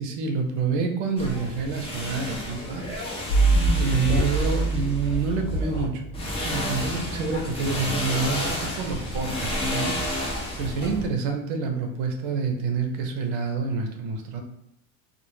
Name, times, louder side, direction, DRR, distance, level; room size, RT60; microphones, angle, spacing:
voice 1, 0.0-2.9 3.8-6.0 6.4-10.0 10.6-14.4, right 4 dB, 60° right, 4 dB, 0.6 m, -27 dB
sound 1, 1.2-5.8 6.1-11.1, left 1 dB, 15° left, 0.3 m, -31 dB
sound 2, 3.3-6.8, right 2 dB, 55° left, 0.6 m, -24 dB
2.1 x 2.1 x 3.1 m, 0.80 s
supercardioid pair, 100°, 46 cm